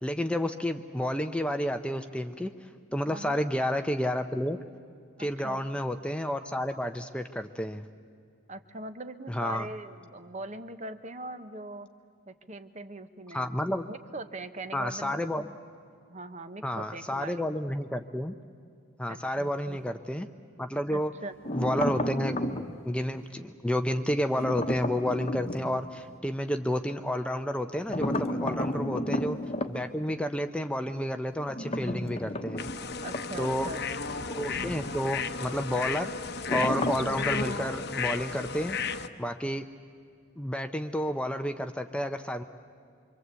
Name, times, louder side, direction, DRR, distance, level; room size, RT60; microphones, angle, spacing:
voice 1, 0.0-4.6 5.2-7.8 9.3-9.7 13.3-13.9 14.7-15.4 16.6-18.3 19.0-20.3 20.6-21.1 21.5-22.4 22.9-29.4 29.7-32.7 33.4-33.7 34.3-36.1 36.5-38.8 39.2-39.6 40.4-42.4, equal, 5° left, 7 dB, 0.6 m, -30 dB
voice 2, 3.1-3.4 5.2-5.6 8.5-11.9 12.3-13.6 13.9-15.2 16.1-17.5 19.1-19.8 20.9-21.3 33.0-33.8, right 2 dB, 35° right, 10 dB, 1.0 m, -41 dB
sound 1, 21.4-22.8 24.3-25.8 27.9-29.7 31.5-33.9 34.2-34.3 36.5-37.2, left 1 dB, 30° left, 1.1 m, -32 dB
sound 2, 32.6-39.1, left 5 dB, 50° left, 0.9 m, -34 dB
26.0 x 24.5 x 8.2 m, 2.3 s
head